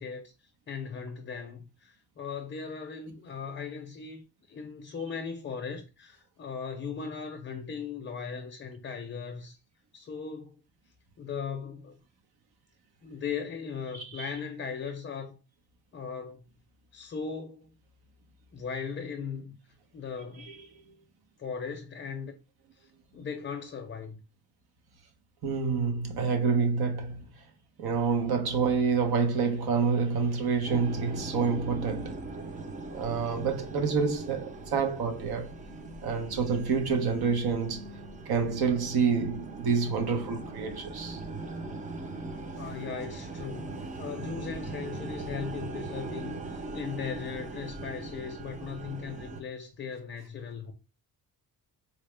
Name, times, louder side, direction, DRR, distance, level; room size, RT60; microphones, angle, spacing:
voice 1, 0.0-9.6 9.9-10.6 11.2-12.0 13.0-15.4 15.9-16.4 16.9-17.8 18.5-19.6 19.9-20.5 21.4-22.3 22.7-24.2 42.6-50.7, left 6 dB, 30° left, 0.5 m, -38 dB
voice 2, 13.9-14.3 20.4-20.6 25.4-27.3 27.8-32.2 32.9-35.5 36.0-37.9 38.3-41.2, right 5 dB, 75° right, 1.0 m, -28 dB
sound 1, 30.7-49.4, right 2 dB, 20° right, 0.4 m, -40 dB
4.3 x 2.0 x 3.2 m
wide cardioid pair, 160°, 38 cm